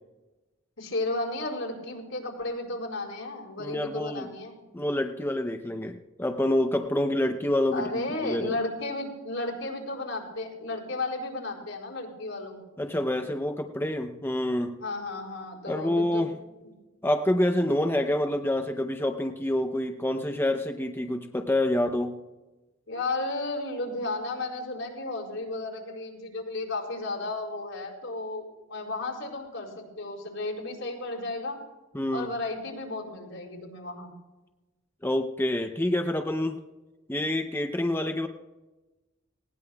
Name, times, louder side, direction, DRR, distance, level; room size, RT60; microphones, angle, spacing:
voice 1, 0.8-4.6 7.7-12.6 13.2-13.3 14.8-16.3 16.6-16.7 22.9-31.6 32.1-34.1, left 2 dB, 80° left, -2 dB, 4.4 m, -33 dB
voice 2, 3.6-4.3 4.7-8.6 12.8-14.7 15.7-16.3 17.0-22.2 31.9-32.3 35.0-36.6 37.1-38.3, left 1 dB, 10° left, 5 dB, 0.6 m, -27 dB
19.5 x 18.0 x 2.3 m, 1.1 s
head